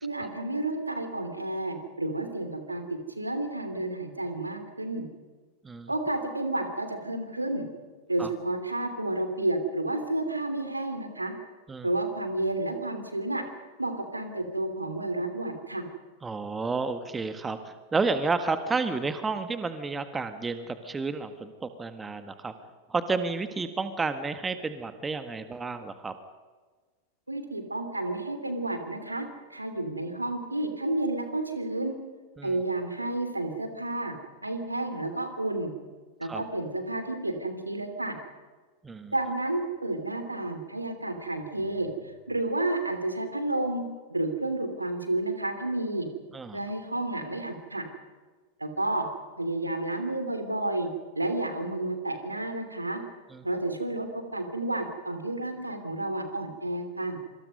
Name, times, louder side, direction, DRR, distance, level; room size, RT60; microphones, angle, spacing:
voice 1, 0.0-5.1 5.9-7.6 8.1-11.3 11.8-13.4 13.8-15.8 27.3-31.9 32.4-34.1 34.4-35.7 36.2-38.1 39.1-43.8 44.1-46.1 46.5-47.9 48.6-49.0 49.4-50.9 51.1-53.0 53.4-57.2, right 2 dB, 85° right, 8 dB, 3.0 m, -31 dB
voice 2, 16.2-22.5 22.9-26.1 32.4-32.5 36.3-36.4 38.8-39.1 46.3-46.6, right 4 dB, 15° right, 10 dB, 1.6 m, -31 dB
26.5 x 25.5 x 5.4 m, 1.4 s
figure-of-eight pair, 90°, 0 cm